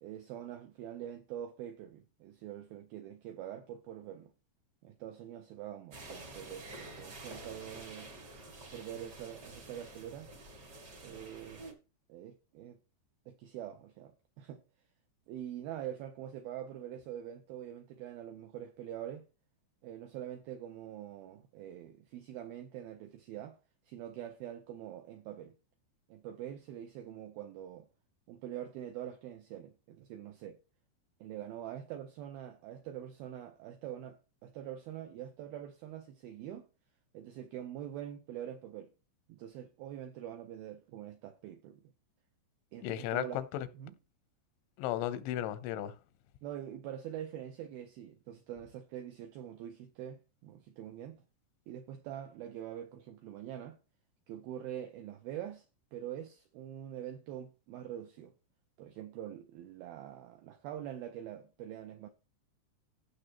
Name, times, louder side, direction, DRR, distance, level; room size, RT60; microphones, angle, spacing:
voice 1, 0.0-4.3 4.8-8.1 8.7-10.3 11.0-11.7 12.1-12.8 13.3-14.6 15.3-19.3 19.8-23.6 23.9-25.6 26.1-27.9 28.3-30.6 31.2-36.7 37.1-38.9 39.3-41.8 42.7-43.4 43.7-44.0 46.4-51.2 51.7-53.8 54.3-55.7 55.9-58.3 58.8-62.1, right 11 dB, 85° right, 2.1 m, -44 dB
sound 1, 5.9-11.7, right 2 dB, 45° right, 1.3 m, -49 dB
voice 2, 42.8-43.7 44.8-45.9, left 12 dB, 90° left, 3.2 m, -35 dB
15.5 x 6.5 x 3.0 m
omnidirectional pair, 5.2 m